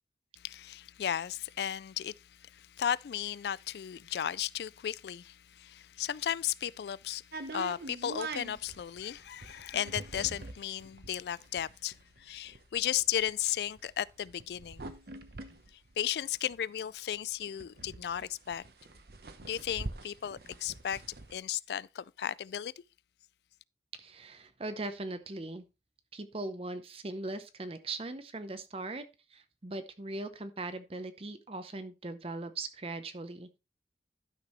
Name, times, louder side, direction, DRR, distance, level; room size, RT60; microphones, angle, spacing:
voice 1, 0.4-14.9 16.0-18.6 19.4-21.0 21.3-22.7, left 10 dB, 70° left, 0.3 m, -35 dB
sound 1, 7.3-16.8 17.1-17.2 17.4-21.4, right 2 dB, 60° right, 0.9 m, -44 dB
voice 2, 24.0-25.7 26.1-33.6, right 2 dB, 35° right, 0.7 m, -40 dB
11.5 x 6.0 x 3.1 m
head